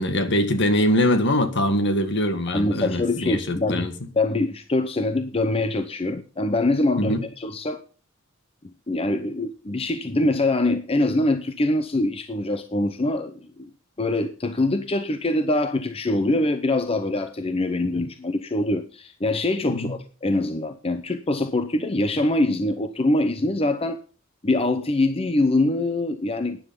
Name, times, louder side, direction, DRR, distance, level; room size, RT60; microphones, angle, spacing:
voice 1, 0.0-3.9 7.0-7.2 19.7-20.0, left 1 dB, 60° left, 1.9 m, -23 dB
voice 2, 2.5-3.9 4.2-7.8 8.9-13.7 14.0-24.0 24.4-26.6, left 2 dB, 30° left, 0.7 m, -24 dB
12.5 x 10.0 x 5.3 m
head